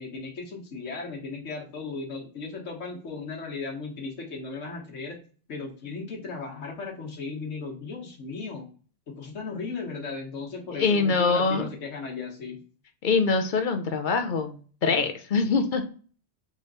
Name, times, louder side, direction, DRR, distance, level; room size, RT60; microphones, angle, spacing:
voice 1, 0.0-5.2 5.5-8.6 9.1-12.6, left 4 dB, 85° left, -1 dB, 1.5 m, -36 dB
voice 2, 10.7-11.6 13.0-15.8, left 4 dB, 50° left, 7 dB, 0.6 m, -24 dB
3.8 x 3.4 x 3.9 m, 0.40 s
omnidirectional pair, 1.2 m